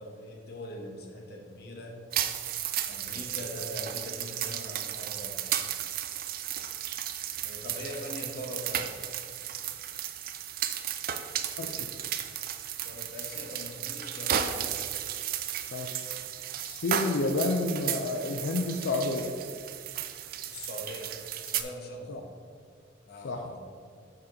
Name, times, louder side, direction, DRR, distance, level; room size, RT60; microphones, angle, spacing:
voice 1, 0.0-2.0 2.8-5.4 7.4-8.9 12.8-14.9 20.5-21.1 21.4-22.3 23.0-23.6, left 1 dB, 55° left, 1 dB, 1.1 m, -41 dB
sound 1, 2.1-21.6, right 10 dB, 50° right, 0.4 m, -34 dB
voice 2, 11.6-11.9 15.7-16.1 16.6-19.3 22.1-22.2 23.2-23.5, left 2 dB, 80° left, 3 dB, 0.5 m, -30 dB
6.5 x 4.4 x 5.0 m, 2.1 s
head